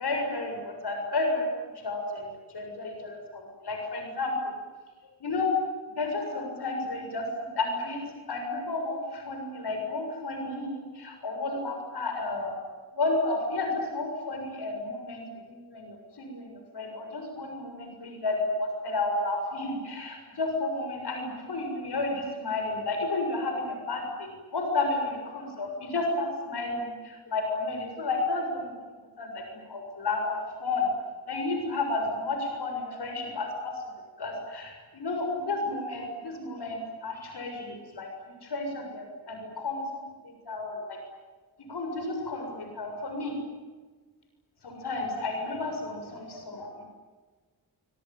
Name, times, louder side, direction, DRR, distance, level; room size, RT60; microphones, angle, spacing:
voice 1, 0.0-1.5 1.8-4.3 5.2-5.5 5.9-8.0 8.3-12.6 12.9-28.7 29.2-30.9 31.3-33.5 33.7-33.8 34.2-38.1 38.4-40.0 40.5-41.0 41.7-43.3 44.6-46.8, left 2 dB, 75° left, 3 dB, 7.2 m, -32 dB
25.5 x 25.5 x 9.1 m, 1.4 s
wide cardioid pair, 130°, 40 cm